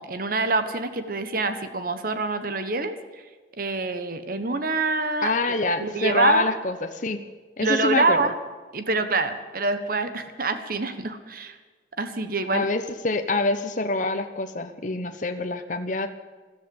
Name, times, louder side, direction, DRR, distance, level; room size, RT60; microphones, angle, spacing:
voice 1, 0.0-3.2 3.6-5.3 5.8-6.5 7.6-8.3 8.7-11.6 12.0-12.6, right 3 dB, 50° right, 9 dB, 1.2 m, -26 dB
voice 2, 5.2-7.2 7.6-8.2 12.5-16.1, left 3 dB, 45° left, 7 dB, 0.9 m, -26 dB
14.5 x 13.5 x 7.1 m, 1.4 s
head